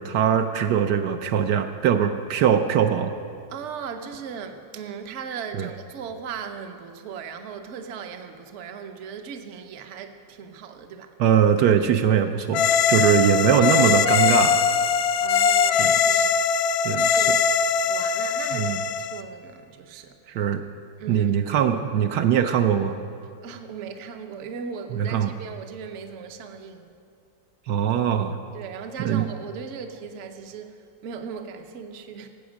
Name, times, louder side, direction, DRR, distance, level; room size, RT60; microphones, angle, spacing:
voice 1, 0.0-3.1 5.5-5.7 11.2-14.6 15.8-16.3 16.8-17.3 18.5-18.8 20.3-20.6 21.1-23.0 24.9-25.3 27.7-28.4 29.0-29.2, right 8 dB, 70° right, 1.1 m, -22 dB
voice 2, 3.5-11.1 13.5-13.6 15.2-16.3 17.0-17.5 17.8-20.2 21.0-21.3 23.4-26.9 28.5-32.3, right 6 dB, 55° right, 0.9 m, -38 dB
sound 1, 12.5-19.2, left 6 dB, 70° left, 0.9 m, -21 dB
17.5 x 8.0 x 6.3 m
omnidirectional pair, 1.9 m